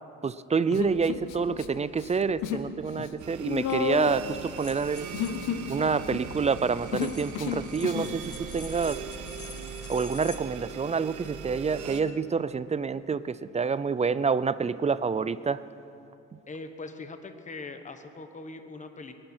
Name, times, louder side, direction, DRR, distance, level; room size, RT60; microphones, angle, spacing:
voice 1, 0.2-5.1 5.7-9.0 9.9-15.6, right 5 dB, 25° right, 16 dB, 0.4 m, -28 dB
Human voice, 0.7-1.7 1.9-2.7 3.0-8.2, left 8 dB, 90° left, 0.9 m, -32 dB
sound 1, 3.2-12.0, right 6 dB, 75° right, 1.2 m, -41 dB
sound 2, 3.6-3.7 4.6-5.5 6.9-10.4, left 7 dB, 50° left, 1.3 m, -47 dB
voice 2, 16.5-19.1, left 3 dB, 25° left, 8 dB, 1.0 m, -41 dB
22.5 x 11.0 x 4.4 m, 2.7 s
cardioid pair, 90°, 30 cm